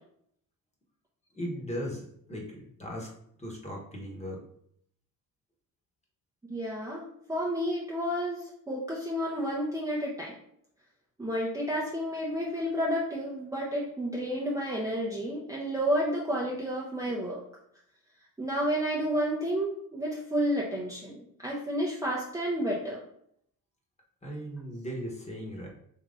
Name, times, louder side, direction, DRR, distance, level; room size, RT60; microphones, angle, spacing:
voice 1, 1.3-3.1 3.4-4.4 24.2-25.7, equal, 20° left, -1 dB, 1.1 m, -37 dB
voice 2, 6.5-10.4 11.2-17.4 18.4-23.0, equal, 10° right, -5 dB, 0.6 m, -31 dB
3.7 x 3.0 x 3.6 m, 0.69 s
cardioid pair, 125°, 36 cm